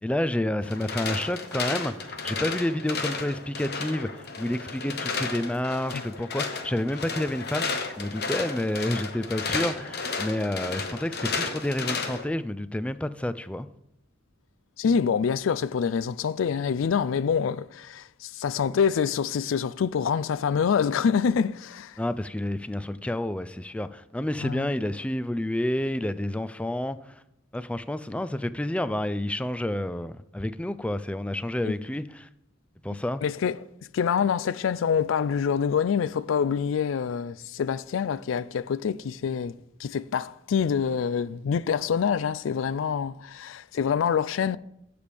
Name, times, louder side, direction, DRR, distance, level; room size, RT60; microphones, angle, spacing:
voice 1, 0.0-13.7 22.0-27.2 27.5-32.3 32.8-33.2, left 1 dB, 5° left, 0.3 m, -29 dB
sound 1, 0.6-12.2, left 4 dB, 55° left, 1.1 m, -33 dB
voice 2, 14.8-21.9 24.4-24.7 31.7-31.8 33.2-33.6 33.9-44.6, left 7 dB, 90° left, 0.4 m, -26 dB
15.5 x 6.8 x 3.4 m
head